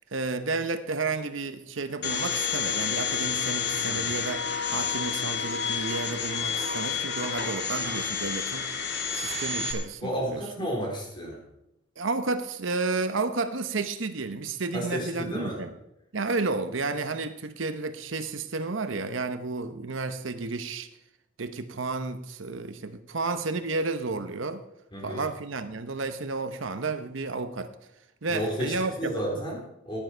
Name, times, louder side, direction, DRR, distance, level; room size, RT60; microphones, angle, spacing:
voice 1, 0.1-4.4 4.7-8.7 9.1-10.7 12.0-15.7 16.1-20.9 21.4-24.7 25.0-27.7 28.2-29.2, right 3 dB, 80° right, 9 dB, 0.9 m, -31 dB
Domestic sounds home sounds, 2.0-9.7, left 6 dB, 55° left, 2.0 m, -29 dB
voice 2, 3.8-4.1 10.0-11.4 14.7-15.6 24.9-25.3 28.3-30.0, equal, 25° left, -2 dB, 3.9 m, -32 dB
14.5 x 10.5 x 4.5 m, 0.84 s
head